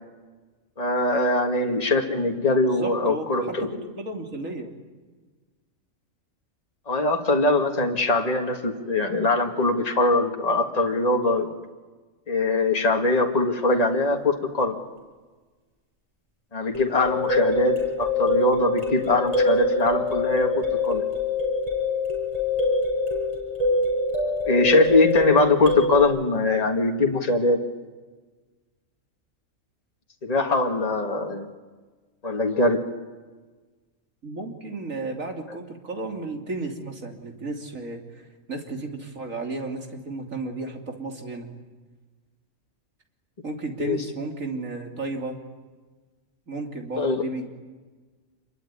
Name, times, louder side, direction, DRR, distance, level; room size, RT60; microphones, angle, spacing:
voice 1, 0.8-3.7 6.9-11.5 12.3-14.8 16.5-21.1 24.5-27.6 30.2-31.5 32.2-32.8 35.5-35.6 43.8-44.0 47.0-47.2, left 2 dB, 30° left, 3 dB, 2.0 m, -22 dB
voice 2, 2.6-4.8 34.2-41.5 43.4-45.4 46.5-47.5, right 3 dB, 70° right, 3 dB, 3.5 m, -33 dB
sound 1, 16.7-26.0, left 3 dB, 25° right, 7.2 m, -25 dB
27.0 x 22.5 x 9.8 m, 1.3 s
omnidirectional pair, 1.4 m